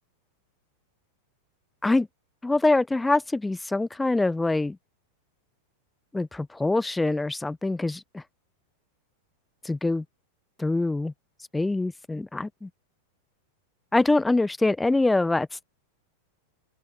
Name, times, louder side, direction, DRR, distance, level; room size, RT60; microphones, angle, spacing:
voice 1, 2.4-4.8 6.1-8.2 9.6-10.0 10.6-11.1 11.5-12.7 13.9-15.6, left 2 dB, 5° left, 0.9 m, -24 dB
open air
figure-of-eight pair, 90°, 0 cm